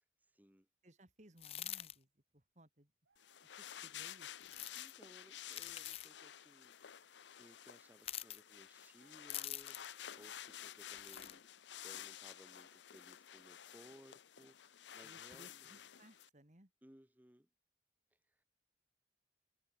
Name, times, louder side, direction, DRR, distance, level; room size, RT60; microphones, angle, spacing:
voice 1, 0.2-0.7 4.7-11.5 11.8-15.8 16.8-17.5 18.1-18.4, equal, 10° right, 1.4 m, -63 dB
voice 2, 0.8-2.9 3.6-4.3 15.0-16.7, right 1 dB, 40° right, 2.9 m, -63 dB
sound 1, 1.4-1.9 4.4-4.9 5.5-6.1 8.0-8.4 9.3-9.9 10.9-11.3, left 13 dB, 35° left, 0.4 m, -45 dB
sound 2, 3.0-3.6 4.4-4.9 7.5-7.9 8.9-9.7, right 4 dB, 85° right, 1.7 m, -76 dB
sound 3, 3.2-16.3, left 10 dB, 85° left, 0.7 m, -52 dB
head